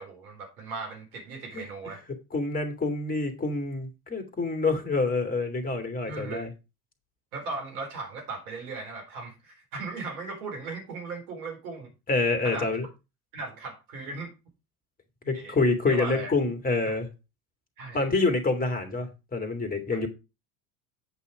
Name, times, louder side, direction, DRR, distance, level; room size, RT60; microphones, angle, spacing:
voice 1, 0.0-2.0 6.1-6.5 7.3-11.9 12.4-12.7 13.3-14.3 15.3-15.6 15.9-16.3 16.8-17.0 17.8-18.1, right 3 dB, 65° right, 4.0 m, -37 dB
voice 2, 2.3-6.5 12.1-12.9 15.2-17.1 17.9-20.1, left 3 dB, 20° left, 2.4 m, -27 dB
8.5 x 5.7 x 4.9 m
hypercardioid pair, 80°, 46 cm